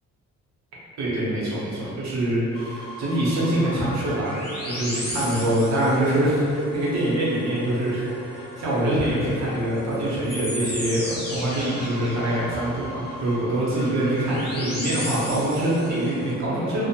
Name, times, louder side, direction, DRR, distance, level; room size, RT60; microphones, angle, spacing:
voice 1, 1.0-4.3 4.7-16.9, right 1 dB, 65° right, -7 dB, 0.8 m, -24 dB
sound 1, 2.5-16.3, left 1 dB, 35° left, 0.7 m, -36 dB
2.6 x 2.0 x 2.8 m, 2.5 s
cardioid pair, 120°, 29 cm